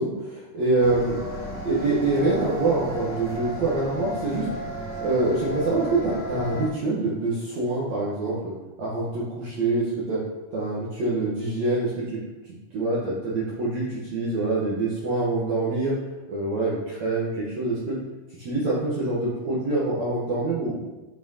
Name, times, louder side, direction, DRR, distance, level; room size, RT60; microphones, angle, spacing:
voice 1, 0.0-4.5 5.0-8.5 8.8-10.2 10.5-12.2 12.7-15.9 16.3-18.0 18.4-20.8, right 2 dB, 75° right, -7 dB, 1.6 m, -25 dB
sound 1, 0.8-6.7, equal, 60° left, 1.2 m, -34 dB
9.0 x 4.2 x 2.8 m, 1.1 s
omnidirectional pair, 4.8 m